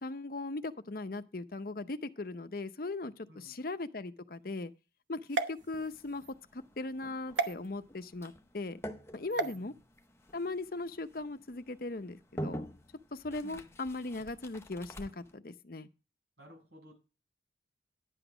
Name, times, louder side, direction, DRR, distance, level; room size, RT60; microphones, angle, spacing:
voice 1, 0.0-4.7 5.1-8.8 9.1-9.7 10.3-12.7 13.1-15.9, left 2 dB, 50° left, 0.7 m, -39 dB
sound 1, 5.3-6.3 7.4-7.5 9.3-9.6, right 4 dB, 80° right, 1.0 m, -34 dB
sound 2, 5.6-15.4, equal, 15° left, 0.7 m, -47 dB
voice 2, 9.4-9.8 13.4-13.8 16.4-16.9, right 1 dB, 65° right, 7.0 m, -55 dB
11.0 x 8.2 x 4.9 m
head